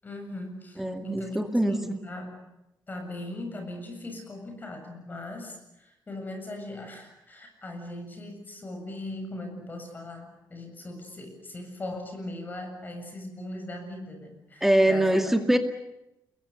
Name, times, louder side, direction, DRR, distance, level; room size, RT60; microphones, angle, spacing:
voice 1, 0.0-2.4 2.9-15.3, left 1 dB, 25° left, 4 dB, 7.5 m, -39 dB
voice 2, 0.8-2.0 14.6-15.6, right 1 dB, 5° right, 6 dB, 2.1 m, -23 dB
29.0 x 22.5 x 7.0 m, 0.88 s
wide cardioid pair, 160°, 7 cm